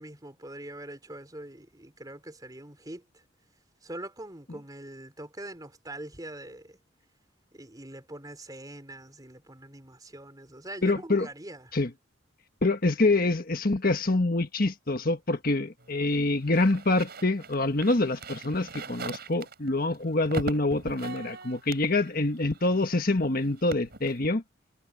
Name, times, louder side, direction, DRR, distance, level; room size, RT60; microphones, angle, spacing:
voice 1, 0.0-3.2 3.8-6.8 7.5-11.8, right 1 dB, 20° right, 3.8 m, -43 dB
voice 2, 10.8-11.3 11.7-11.9 12.6-24.4, left 2 dB, 45° left, 1.5 m, -26 dB
sound 1, 15.8-23.1 23.4-24.2, right 2 dB, 50° right, 6.6 m, -40 dB
head